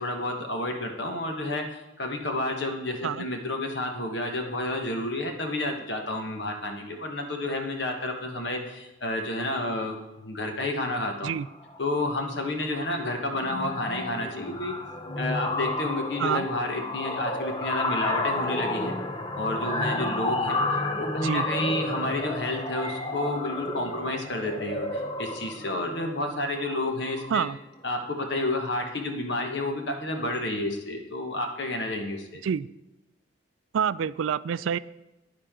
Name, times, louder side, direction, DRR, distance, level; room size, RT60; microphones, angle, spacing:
voice 1, 0.0-11.3 11.8-14.8 15.2-19.0 19.4-27.5 27.8-32.4, left 1 dB, 65° left, 3 dB, 1.3 m, -30 dB
sound 1, 11.5-11.8 12.1-12.4 12.6-27.5, left 2 dB, 25° left, 0.6 m, -31 dB
voice 2, 33.7-34.8, right 7 dB, 85° right, 17 dB, 0.3 m, -27 dB
10.0 x 9.7 x 3.7 m, 0.97 s
head